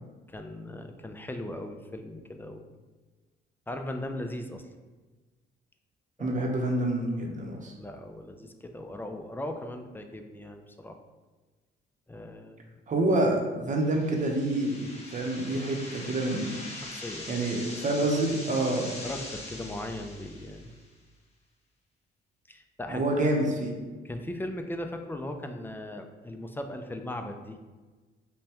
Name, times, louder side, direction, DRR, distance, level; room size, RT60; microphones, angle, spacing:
voice 1, 0.3-2.6 3.7-4.6 6.2-6.4 7.8-11.0 12.1-12.7 16.7-17.3 19.0-20.7 22.5-23.0 24.0-27.6, left 1 dB, 10° left, 5 dB, 0.4 m, -38 dB
voice 2, 6.2-7.7 12.9-16.6 17.3-19.0 22.9-23.7, right 1 dB, 40° right, 1 dB, 0.8 m, -27 dB
sound 1, 13.9-20.8, left 2 dB, 30° left, 0.9 m, -42 dB
5.3 x 2.2 x 2.9 m, 1.3 s
cardioid pair, 90°, 20 cm